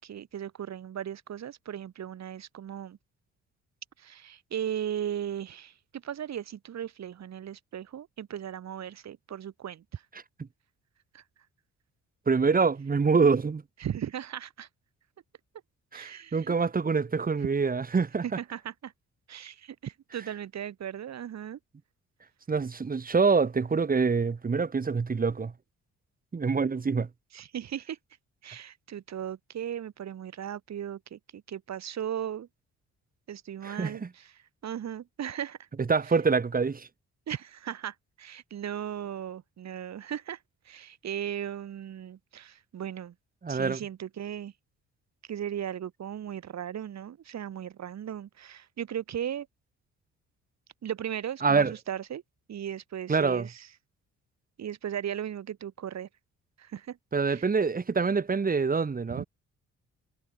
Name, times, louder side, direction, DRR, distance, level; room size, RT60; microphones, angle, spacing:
voice 1, 0.0-3.0 4.0-10.0 11.1-11.2 13.8-14.7 15.9-16.5 18.2-18.9 19.3-21.6 27.3-28.0 28.4-32.5 33.3-35.7 36.0-36.1 37.3-40.4 40.6-43.1 43.5-44.5 45.3-49.5 50.8-52.2 52.5-53.7 54.6-56.1 56.6-57.0 57.3-57.5 59.1-59.2, right 9 dB, 60° right, 4.1 m, -37 dB
voice 2, 12.3-13.6 15.9-18.2 22.5-25.5 26.3-27.1 33.6-34.1 35.9-36.9 43.4-43.8 51.4-51.7 53.1-53.5 57.1-59.3, right 5 dB, 30° right, 2.0 m, -25 dB
cardioid pair, 90°, 30 cm